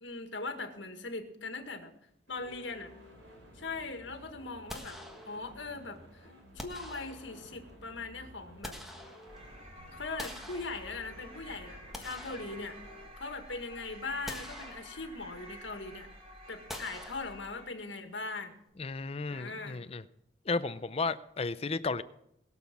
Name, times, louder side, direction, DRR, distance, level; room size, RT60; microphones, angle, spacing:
voice 1, 0.0-1.9 2.3-2.9 3.5-5.0 5.3-6.3 6.6-8.8 9.9-12.8 13.2-16.1 16.5-18.6 19.3-19.8, left 3 dB, 80° left, 1.8 m, -40 dB
sound 1, 2.3-13.1, left 1 dB, 85° right, 5.1 m, -54 dB
sound 2, 4.7-5.7 6.6-7.6 8.3-9.6 10.2-11.3 11.7-13.2 13.6-13.7 14.3-15.3 16.7-17.8, equal, ahead, 1.4 m, -46 dB
sound 3, 9.3-17.8, equal, 30° right, 5.0 m, -50 dB
voice 2, 18.8-20.0 20.5-22.0, left 3 dB, 30° left, 0.6 m, -33 dB
21.0 x 7.2 x 6.0 m
head